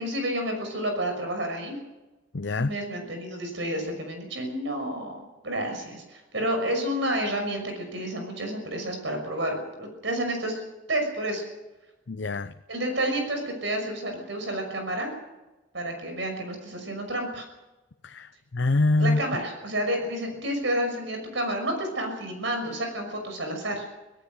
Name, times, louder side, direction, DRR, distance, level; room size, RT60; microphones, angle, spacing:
voice 1, 0.0-1.8 2.6-10.6 10.9-11.5 12.7-15.1 15.7-17.5 19.0-23.8, right 1 dB, 70° right, 4 dB, 6.1 m, -30 dB
voice 2, 2.3-2.7 12.1-12.5 18.0-19.2, left 2 dB, 65° left, 10 dB, 0.7 m, -25 dB
25.0 x 17.5 x 6.4 m, 1.1 s
head